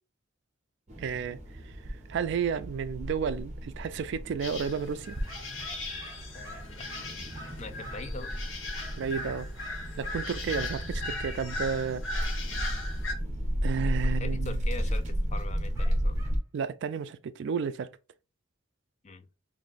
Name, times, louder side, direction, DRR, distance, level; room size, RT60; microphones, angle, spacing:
sound 1, 0.9-16.4, equal, 35° right, 0.8 m, -34 dB
voice 1, 1.0-1.4 2.1-5.2 9.0-9.5 10.0-12.0 13.6-14.6 16.5-17.9, right 6 dB, 60° right, 0.3 m, -32 dB
sound 2, 4.4-13.1, left 2 dB, 75° left, 1.0 m, -39 dB
sound 3, 5.2-8.2 8.7-10.7 11.4-11.7 15.7-16.4, equal, 15° right, 1.2 m, -49 dB
voice 2, 6.3-6.9 7.6-8.3 14.0-16.2 19.0-19.3, left 3 dB, 35° left, 0.4 m, -42 dB
3.1 x 2.6 x 3.9 m
head